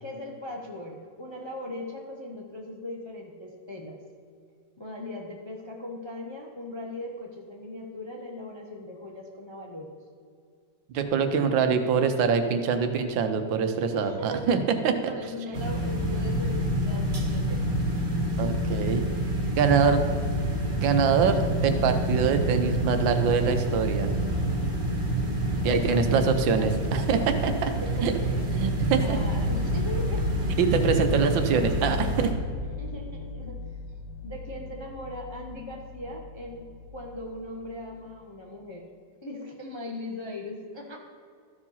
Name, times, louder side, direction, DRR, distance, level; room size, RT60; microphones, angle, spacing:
voice 1, 0.0-4.0 4.8-10.0 13.9-14.4 15.1-17.7 25.6-26.7 27.0-27.5 27.9-28.4 29.0-30.3 32.8-33.6 34.2-38.9 39.2-41.0, left 1 dB, 40° left, 0 dB, 0.4 m, -39 dB
voice 2, 10.9-15.1 18.4-19.0 19.6-20.0 20.8-24.1 25.6-27.7 28.0-28.1 28.5-29.2 30.6-32.3, right 6 dB, 90° right, 7 dB, 1.5 m, -24 dB
sound 1, 15.5-32.3, right 1 dB, 35° right, 1.7 m, -28 dB
sound 2, 27.9-37.7, left 4 dB, 70° left, 1.5 m, -35 dB
13.0 x 4.9 x 5.5 m, 2.2 s
omnidirectional pair, 2.0 m